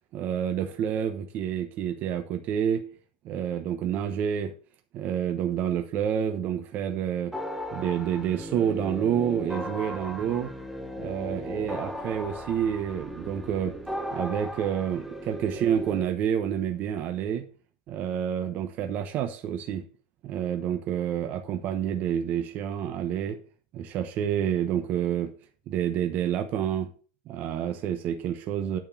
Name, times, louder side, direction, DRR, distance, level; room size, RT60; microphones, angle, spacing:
voice 1, 0.1-2.8 3.2-4.5 4.9-7.3 7.7-10.5 11.0-13.8 14.1-17.4 17.9-19.8 20.2-23.4 23.7-25.3 25.7-26.9 27.3-28.8, right 9 dB, 35° right, 0.9 m, -28 dB
sound 1, 7.3-16.0, equal, ahead, 0.9 m, -36 dB
9.0 x 4.5 x 7.0 m
supercardioid pair, 150°, 5 cm